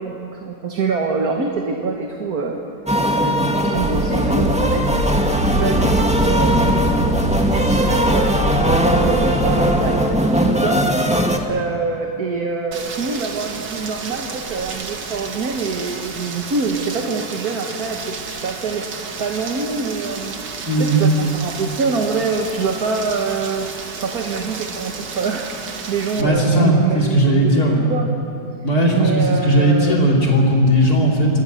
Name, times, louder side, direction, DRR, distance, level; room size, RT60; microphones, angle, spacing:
voice 1, 0.0-2.6 3.1-4.9 5.4-6.9 7.5-11.2 11.4-20.4 20.8-28.1 28.9-30.0, right 4 dB, 60° right, 2 dB, 2.1 m, -25 dB
sound 1, 2.9-11.4, equal, 5° right, 1.6 m, -19 dB
sound 2, 3.7-10.0, right 1 dB, 30° right, 6.3 m, -23 dB
Rain, 12.7-26.2, right 5 dB, 75° right, 2.3 m, -32 dB
voice 2, 20.7-21.1 26.2-27.8 28.6-31.4, right 1 dB, 60° left, -2 dB, 3.4 m, -16 dB
28.0 x 21.5 x 6.7 m, 3.0 s
omnidirectional pair, 1.9 m